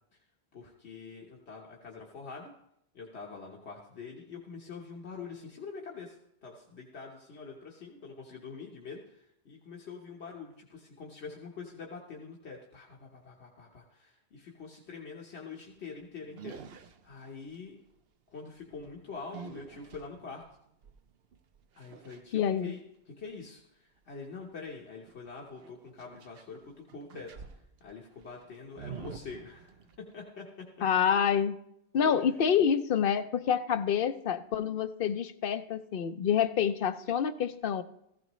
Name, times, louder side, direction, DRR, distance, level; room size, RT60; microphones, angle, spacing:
voice 1, 0.5-2.5 2.9-17.8 18.3-20.4 21.8-22.8 23.2-27.3 27.8-30.7 32.0-32.2, left 4 dB, 80° left, -2 dB, 1.5 m, -45 dB
sound 1, 15.6-15.9 16.3-17.6 18.5-22.2 25.1-26.6 26.9-30.1, right 6 dB, 65° right, 0.9 m, -48 dB
voice 2, 22.3-22.7 30.8-31.6 31.9-37.8, left 8 dB, 60° left, 10 dB, 0.8 m, -27 dB
15.0 x 14.5 x 3.1 m, 0.78 s
omnidirectional pair, 1.1 m